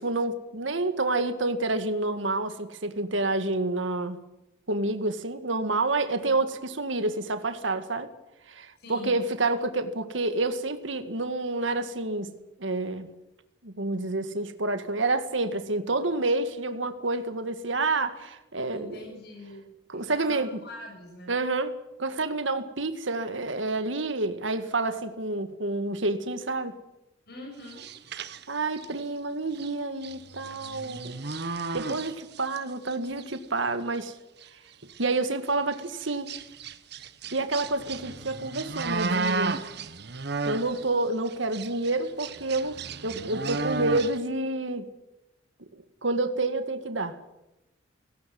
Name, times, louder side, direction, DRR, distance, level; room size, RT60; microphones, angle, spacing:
voice 1, 0.0-4.2 4.7-8.1 8.5-12.3 12.6-13.1 13.6-19.2 19.9-20.5 21.3-21.7 22.0-26.8 28.5-31.2 31.7-34.2 34.5-34.6 35.0-36.3 37.3-39.6 40.4-44.9 45.7-47.2, right 2 dB, 85° right, 9 dB, 2.0 m, -29 dB
voice 2, 6.0-6.3 8.8-9.2 18.7-21.4 27.3-27.8, left 2 dB, 60° left, 1 dB, 7.2 m, -44 dB
sound 1, 27.7-29.0 29.5-29.7 30.0-32.6 32.9-33.4 33.9-34.0 34.4-34.5 34.8-35.1 35.7-40.9 41.3-44.2, right 3 dB, 60° right, 1.3 m, -34 dB
17.5 x 17.5 x 9.5 m, 0.95 s
head